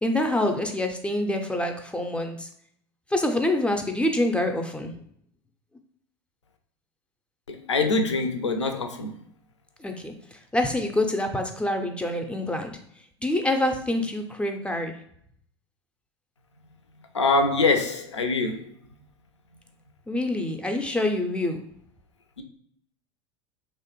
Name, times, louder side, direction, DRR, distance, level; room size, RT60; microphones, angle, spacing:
voice 1, 0.0-2.5 3.1-4.9 9.8-12.8 13.2-14.9 20.1-21.6, left 1 dB, 10° left, 4 dB, 0.4 m, -26 dB
voice 2, 7.5-9.2 17.1-18.7 22.4-22.5, left 3 dB, 90° left, 6 dB, 0.4 m, -24 dB
3.0 x 2.1 x 2.9 m, 0.66 s
figure-of-eight pair, 85°, 15 cm